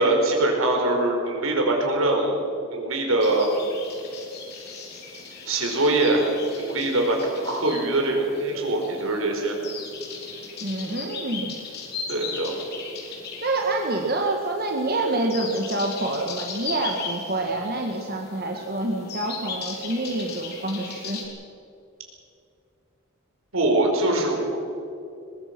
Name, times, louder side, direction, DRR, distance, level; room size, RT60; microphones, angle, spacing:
voice 1, 0.0-2.4 2.7-3.5 5.5-6.3 6.6-9.5 12.1-12.6 23.5-24.6, right 2 dB, 80° right, 1 dB, 5.0 m, -23 dB
sound 1, 3.2-21.3, left 5 dB, 50° left, 4.1 m, -38 dB
voice 2, 10.6-11.6 13.4-21.2, right 2 dB, 45° right, 1 dB, 1.7 m, -27 dB
22.0 x 21.5 x 6.1 m, 2.6 s
head